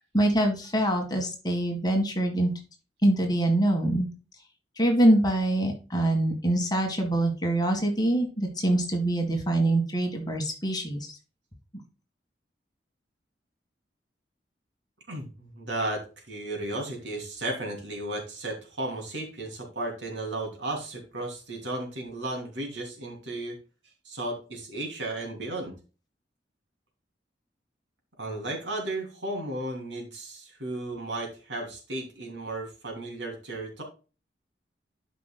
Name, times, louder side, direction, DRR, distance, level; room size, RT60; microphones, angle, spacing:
voice 1, 0.1-2.5 3.0-4.1 4.8-11.1, right 1 dB, 25° left, 3 dB, 1.8 m, -24 dB
voice 2, 15.1-23.6 24.0-25.7 28.2-33.8, right 2 dB, 85° right, 2 dB, 3.0 m, -34 dB
12.0 x 5.2 x 2.2 m, 0.32 s
head